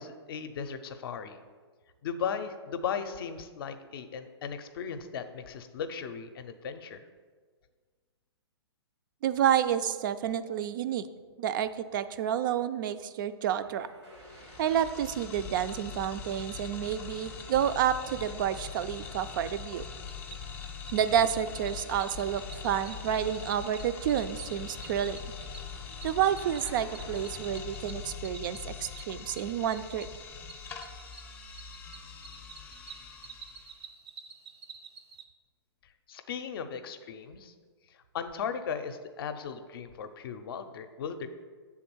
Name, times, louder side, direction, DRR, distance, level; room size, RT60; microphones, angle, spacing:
voice 1, 0.0-1.4 2.0-7.0 36.1-37.5 38.1-41.3, left 7 dB, 55° left, 9 dB, 0.5 m, -37 dB
voice 2, 9.2-11.0 11.4-13.9 14.6-19.8 20.9-25.2 26.0-30.1, right 9 dB, 50° right, 12 dB, 0.4 m, -29 dB
sound 1, 13.5-28.0, right 1 dB, 90° right, 1.6 m, -53 dB
sound 2, 14.1-33.8, left 6 dB, 15° left, 0.5 m, -43 dB
Cricket, 20.0-35.2, right 5 dB, 65° right, 0.8 m, -51 dB
7.1 x 3.7 x 6.1 m, 1.5 s
hypercardioid pair, 135°, 14 cm